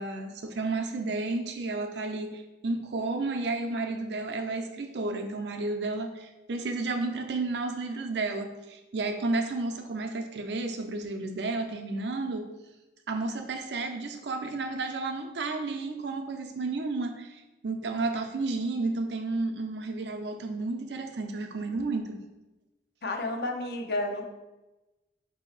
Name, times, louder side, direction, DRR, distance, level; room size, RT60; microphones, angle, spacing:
voice 1, 0.0-12.5 13.1-22.2, right 3 dB, 75° right, 5 dB, 0.5 m, -32 dB
voice 2, 23.0-24.2, left 2 dB, 60° left, 3 dB, 0.6 m, -31 dB
5.0 x 2.7 x 3.8 m, 1.1 s
head